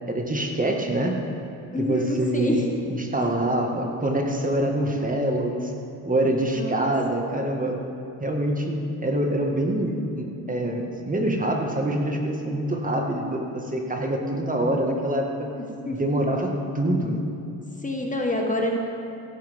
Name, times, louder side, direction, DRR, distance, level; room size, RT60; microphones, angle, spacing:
voice 1, 0.1-1.2 1.8-5.7 6.0-7.8 8.2-15.5 16.0-17.2, right 1 dB, 20° right, 1 dB, 1.9 m, -25 dB
voice 2, 1.7-2.6 6.5-6.9 15.6-16.0 17.8-18.8, left 1 dB, 20° left, 0 dB, 1.6 m, -27 dB
15.5 x 12.5 x 3.7 m, 2.8 s
hypercardioid pair, 70°, 43 cm